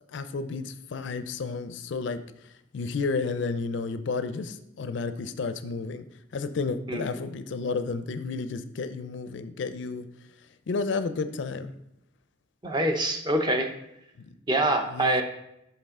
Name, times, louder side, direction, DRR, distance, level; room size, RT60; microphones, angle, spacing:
voice 1, 0.1-2.2 2.7-6.0 6.3-10.1 10.7-11.7 14.2-14.3 14.9-15.2, left 4 dB, 70° left, 11 dB, 0.4 m, -31 dB
voice 2, 12.6-13.7 14.5-15.2, right 1 dB, 25° right, 5 dB, 0.6 m, -25 dB
5.8 x 5.4 x 3.6 m, 0.81 s
head